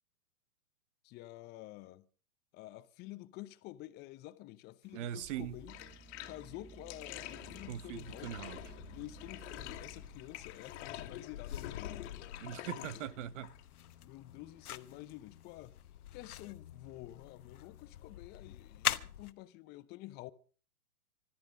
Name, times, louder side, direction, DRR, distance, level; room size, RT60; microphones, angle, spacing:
voice 1, 1.0-2.1 2.5-5.8 6.3-8.4 8.9-12.2 12.8-13.1 14.0-15.8 16.1-20.3, left 16 dB, 20° left, 0.7 m, -49 dB
sound 1, 4.8-10.7, right 4 dB, 20° right, 5.5 m, -55 dB
voice 2, 4.9-5.5 7.7-8.6 12.4-13.5, right 11 dB, 50° right, 1.2 m, -41 dB
Bathtub (filling or washing), 5.6-17.3, left 13 dB, 45° left, 1.9 m, -49 dB
sound 2, 7.6-19.3, left 11 dB, 75° left, 1.1 m, -44 dB
20.5 x 13.5 x 5.0 m
hypercardioid pair, 130°, 46 cm